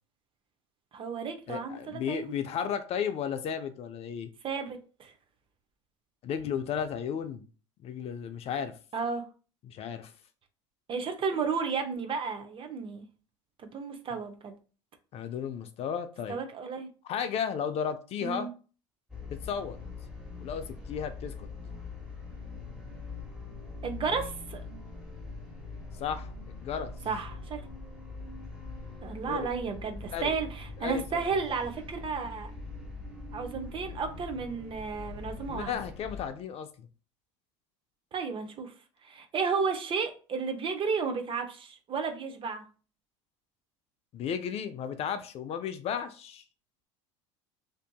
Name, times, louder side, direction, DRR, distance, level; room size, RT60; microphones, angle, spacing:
voice 1, 0.9-2.3 4.4-5.1 8.9-9.2 10.9-13.1 13.6-14.5 16.3-16.9 18.2-18.5 23.8-24.6 27.1-27.6 29.0-32.5 33.3-35.8 38.1-38.7 39.0-42.7, right 5 dB, 35° right, 0.6 m, -33 dB
voice 2, 1.5-4.3 6.2-7.5 7.8-8.8 9.6-10.1 15.1-16.4 17.0-18.5 19.3-19.8 20.4-21.5 26.0-26.9 29.2-29.5 30.1-30.3 30.8-31.2 35.5-36.9 44.1-46.4, left 7 dB, 40° left, 0.3 m, -34 dB
sound 1, 19.1-36.3, left 3 dB, 5° right, 1.0 m, -42 dB
2.6 x 2.5 x 2.2 m
hypercardioid pair, 85°, 16 cm